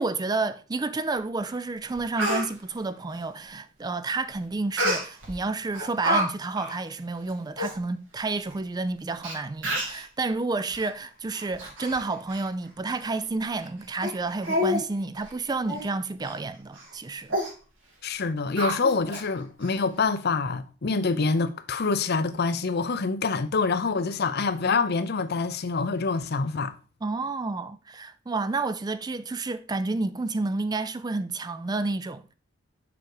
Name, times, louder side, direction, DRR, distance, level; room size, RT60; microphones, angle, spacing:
voice 1, 0.0-17.4 27.0-32.2, right 3 dB, 20° right, 0.4 m, -30 dB
Speech, 1.5-1.6 1.9-2.5 4.8-5.3 5.7-6.2 6.6-6.7 7.3-7.4 7.6-7.7 8.5-8.6 9.2-9.3 9.6-10.0 10.7-10.9 11.3-12.0 12.3-12.5 12.9-13.0 13.5-13.7 14.0-14.1 14.4-14.8 15.1-15.3 15.7-15.9 16.2-16.4 16.7-16.9 17.3-17.5 18.6-19.2 19.6-19.7, equal, 70° right, 3.6 m, -28 dB
voice 2, 18.0-26.7, left 4 dB, 55° left, 0.6 m, -26 dB
7.0 x 5.1 x 4.7 m
head